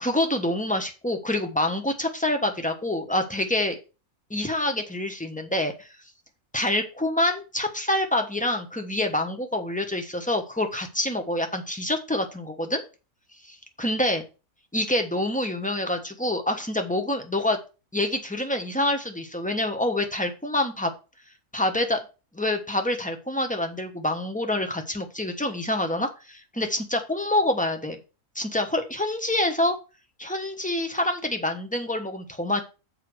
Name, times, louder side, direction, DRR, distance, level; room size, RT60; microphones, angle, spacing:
voice 1, 0.0-3.8 4.3-5.9 6.5-12.8 13.5-14.2 14.7-17.6 17.9-20.9 21.5-22.0 22.3-28.0 28.3-29.7 30.2-32.6, left 1 dB, 5° left, 5 dB, 1.1 m, -26 dB
6.8 x 5.0 x 6.2 m, 0.30 s
omnidirectional pair, 1.5 m